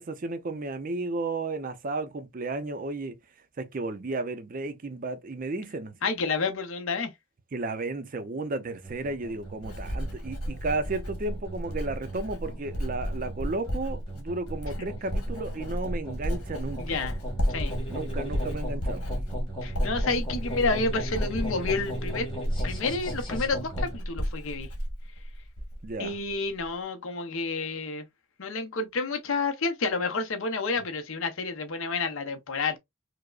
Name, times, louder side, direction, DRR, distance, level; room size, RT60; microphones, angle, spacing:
voice 1, 0.0-3.2 3.6-6.0 7.5-17.0 17.9-19.1 25.8-26.2, right 2 dB, 40° right, 0.4 m, -33 dB
voice 2, 6.0-7.1 14.8-14.9 16.8-17.2 17.5-17.7 19.6-22.3 22.6-24.7 26.0-28.1 28.4-32.8, left 3 dB, 65° left, 0.7 m, -30 dB
sound 1, 8.7-24.0, right 1 dB, 20° left, 1.4 m, -39 dB
Writing, 8.9-25.9 26.2-26.7, equal, 80° left, 1.3 m, -33 dB
4.7 x 2.0 x 2.3 m
head